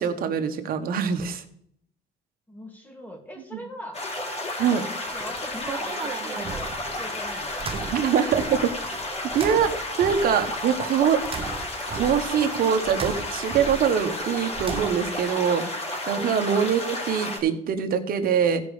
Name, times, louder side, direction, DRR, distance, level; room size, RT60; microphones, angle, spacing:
voice 1, 0.0-1.4 4.6-4.8 7.9-8.7 9.3-9.7 10.0-11.2 11.9-15.6 16.1-18.6, right 7 dB, 60° right, 6 dB, 1.4 m, -23 dB
voice 2, 2.5-4.0 4.6-7.8 16.1-16.7, equal, 10° left, 2 dB, 2.7 m, -41 dB
sound 1, 3.9-17.4, left 1 dB, 40° left, 3.6 m, -32 dB
sound 2, 5.1-15.3, right 5 dB, 35° right, 0.9 m, -37 dB
15.5 x 5.3 x 5.1 m, 0.66 s
cardioid pair, 110°, 17 cm